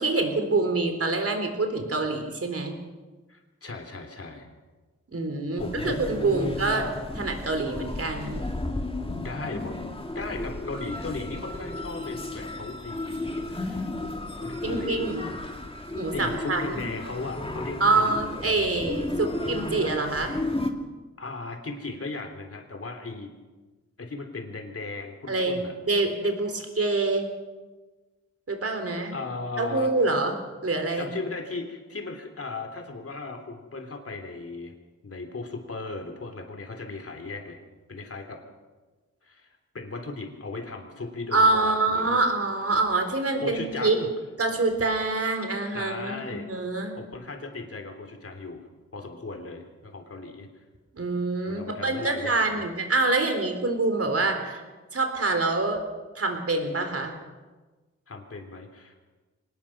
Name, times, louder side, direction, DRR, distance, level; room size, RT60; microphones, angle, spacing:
voice 1, 0.0-2.8 5.1-6.9 7.1-8.5 14.6-15.3 16.0-16.9 17.8-20.3 25.3-27.3 28.5-29.1 29.6-30.3 30.6-31.1 41.3-44.0 44.4-46.9 50.9-54.6 54.9-55.8 56.2-57.1, right 3 dB, 50° right, 5 dB, 3.8 m, -26 dB
voice 2, 3.3-4.5 5.5-6.0 6.4-6.5 9.2-13.9 14.4-15.0 16.1-18.2 21.2-23.3 24.0-25.7 29.1-29.9 31.0-34.7 35.0-37.6 37.9-38.4 39.2-39.5 39.7-42.2 43.4-44.1 45.7-46.5 47.0-48.6 48.9-50.5 51.5-52.7 58.1-59.0, left 3 dB, 50° left, 5 dB, 3.4 m, -37 dB
sound 1, 5.6-20.7, left 2 dB, 20° left, 2.1 m, -33 dB
24.0 x 19.5 x 6.1 m, 1.3 s
wide cardioid pair, 105°, 30 cm